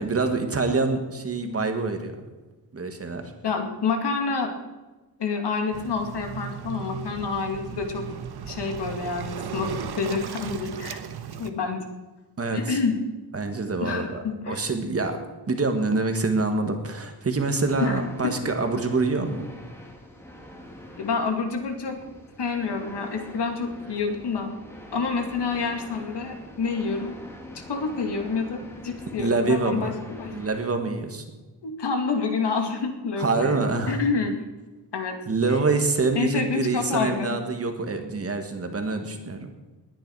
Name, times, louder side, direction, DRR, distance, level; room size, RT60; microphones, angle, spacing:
voice 1, 0.0-2.1 2.7-3.2 12.4-12.8 13.3-15.2 15.5-19.5 29.2-29.9 30.3-31.2 33.2-34.0 35.3-39.5, right 3 dB, 35° right, 6 dB, 1.6 m, -26 dB
voice 2, 3.4-4.5 5.2-8.0 8.4-9.7 10.0-11.0 11.4-11.8 12.5-12.9 13.8-14.6 17.8-18.3 21.0-22.0 22.4-24.6 24.9-27.1 27.7-30.3 31.6-34.3 34.9-35.2 36.1-37.4, left 4 dB, 70° left, 4 dB, 2.4 m, -28 dB
Waves surf, 5.7-11.5, right 7 dB, 65° right, 1.1 m, -36 dB
sound 1, 17.5-30.6, left 1 dB, 5° left, 1.8 m, -45 dB
19.5 x 10.0 x 4.7 m, 1.2 s
wide cardioid pair, 175°, 42 cm